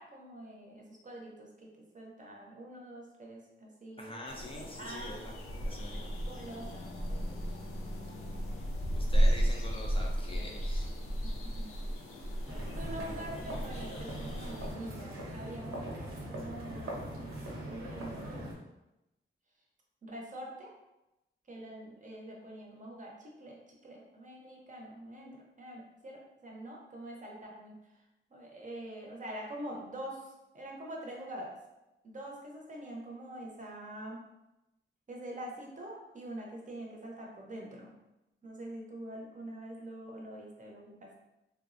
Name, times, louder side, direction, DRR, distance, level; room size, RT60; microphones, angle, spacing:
voice 1, 0.0-4.2 4.5-5.2 5.9-7.4 10.2-10.5 11.2-11.6 12.8-17.2 17.7-18.5 20.0-20.7 21.5-23.6 23.8-27.8 28.3-31.6 32.0-34.2 35.1-37.9 38.4-41.1, right 1 dB, 40° right, -1 dB, 0.5 m, -45 dB
voice 2, 4.0-5.3 5.6-6.1 8.9-10.9, left 1 dB, 25° left, -1 dB, 0.3 m, -45 dB
sound 1, 4.3-14.7, equal, 90° left, 0.5 m, -34 dB
sound 2, 12.5-18.5, right 1 dB, 85° right, 0.7 m, -41 dB
3.2 x 2.0 x 2.5 m, 0.94 s
wide cardioid pair, 145°, 21 cm